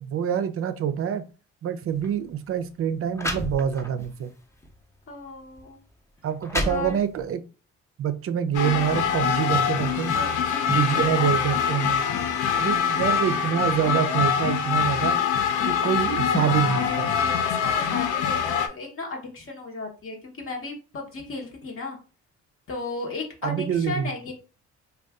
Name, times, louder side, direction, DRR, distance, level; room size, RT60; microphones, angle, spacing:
voice 1, 0.0-1.2 1.6-4.3 6.2-7.4 8.0-10.1 10.7-12.0 12.6-15.2 15.7-17.1 23.4-24.1, right 9 dB, 50° right, 11 dB, 0.4 m, -26 dB
sound 1, 1.9-2.1 2.8-2.9 3.1-4.1 4.6-4.8 5.6-5.7 6.2-7.3, left 1 dB, 10° left, 0.7 m, -31 dB
voice 2, 5.1-5.8 6.6-7.0 10.1-12.8 16.3-22.0 22.7-24.3, left 3 dB, 45° left, 0 dB, 0.9 m, -35 dB
sound 2, 8.5-18.7, left 7 dB, 80° left, 0.5 m, -24 dB
2.5 x 2.3 x 3.4 m, 0.34 s
cardioid pair, 90°, 30 cm